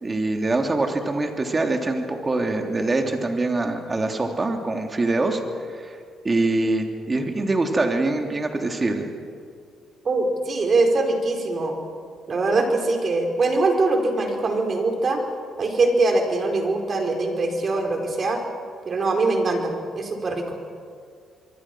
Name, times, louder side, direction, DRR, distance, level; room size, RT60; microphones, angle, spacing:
voice 1, 0.0-5.4 5.7-6.0 6.2-9.1, right 2 dB, 25° right, 3 dB, 3.2 m, -24 dB
voice 2, 10.0-11.8 12.3-15.2 15.6-18.4 18.8-20.6, right 2 dB, 45° right, 3 dB, 4.9 m, -22 dB
26.0 x 23.5 x 6.3 m, 2.3 s
cardioid pair, 90°, 0 cm